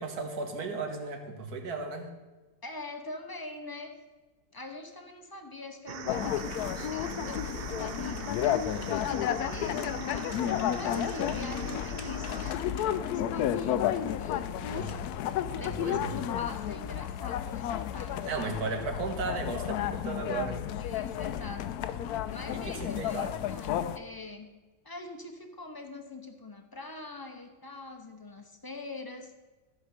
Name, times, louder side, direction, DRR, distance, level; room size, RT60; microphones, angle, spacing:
voice 1, 0.0-2.1 14.6-15.0 15.6-16.1 18.2-20.7 22.5-23.3, right 4 dB, 90° right, 4 dB, 1.9 m, -35 dB
voice 2, 2.6-3.9 4.5-10.4 10.8-15.1 15.5-18.2 20.8-21.6 22.3-24.5 24.8-29.3, left 3 dB, 20° left, 5 dB, 0.8 m, -43 dB
sound 1, 5.9-12.5, right 8 dB, 70° right, 0.5 m, -42 dB
sound 2, 6.1-24.0, left 10 dB, 85° left, 1.1 m, -32 dB
sound 3, 8.3-9.3 9.7-13.1 13.5-13.7, left 6 dB, 70° left, 1.4 m, -48 dB
14.0 x 5.1 x 6.5 m, 1.2 s
omnidirectional pair, 1.6 m